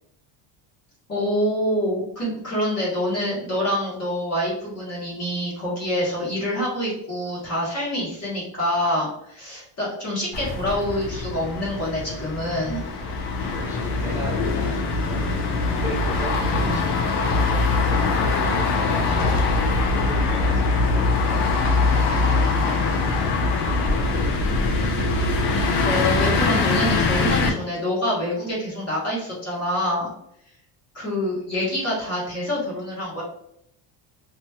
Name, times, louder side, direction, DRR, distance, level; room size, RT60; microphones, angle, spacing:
voice 1, 1.1-12.8 25.8-30.1 30.9-33.2, equal, 30° left, -6 dB, 1.3 m, -26 dB
sound 1, 10.3-27.5, left 3 dB, 55° left, 0.7 m, -22 dB
voice 2, 13.5-15.4 15.6-17.4 17.8-24.7, left 1 dB, 5° right, -11 dB, 1.1 m, -37 dB
2.9 x 2.8 x 2.3 m, 0.73 s
cardioid pair, 155°, 50 cm